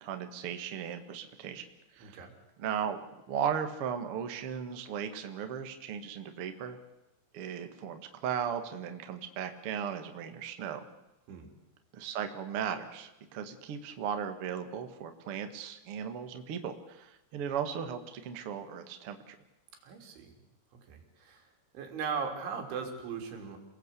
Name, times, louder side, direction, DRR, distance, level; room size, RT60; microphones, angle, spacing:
voice 1, 0.0-1.7 1.9-2.2 2.6-3.0 3.3-6.8 7.3-10.8 11.9-19.3, right 8 dB, 90° right, 7 dB, 1.2 m, -36 dB
voice 2, 2.0-2.3 11.3-11.5 19.8-20.3 20.9-21.5 21.7-23.6, right 6 dB, 65° right, 3 dB, 5.5 m, -38 dB
28.0 x 19.0 x 8.4 m, 0.95 s
omnidirectional pair, 5.9 m